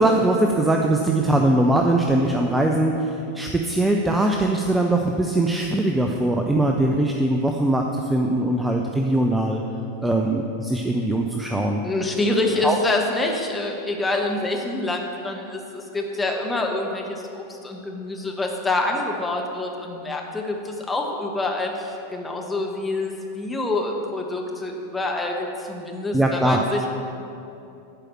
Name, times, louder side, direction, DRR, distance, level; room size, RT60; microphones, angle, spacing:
voice 1, 0.0-9.6 10.0-11.8 12.6-12.8 26.1-26.6, right 1 dB, 10° right, 2 dB, 0.6 m, -21 dB
voice 2, 11.8-26.9, left 2 dB, 10° left, 0 dB, 1.3 m, -26 dB
11.5 x 4.9 x 7.5 m, 2.7 s
figure-of-eight pair, 90°, 0 cm